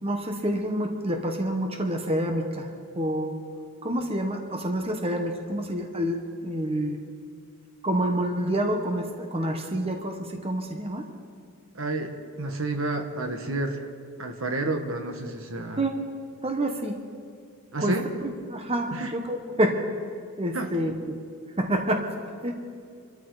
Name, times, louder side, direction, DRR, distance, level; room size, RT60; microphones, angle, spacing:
voice 1, 0.0-2.7 2.9-3.3 3.8-7.0 7.8-11.1 15.8-15.9 16.4-17.0 17.8-18.0 18.5-19.8 20.4-21.1 21.6-22.1 22.4-22.5, right 1 dB, 30° right, 4 dB, 1.2 m, -27 dB
voice 2, 11.7-13.9 14.2-15.8 17.7-18.1 18.9-19.1 20.5-21.0, right 2 dB, 70° right, 5 dB, 1.5 m, -30 dB
26.5 x 13.0 x 4.0 m, 2.3 s
head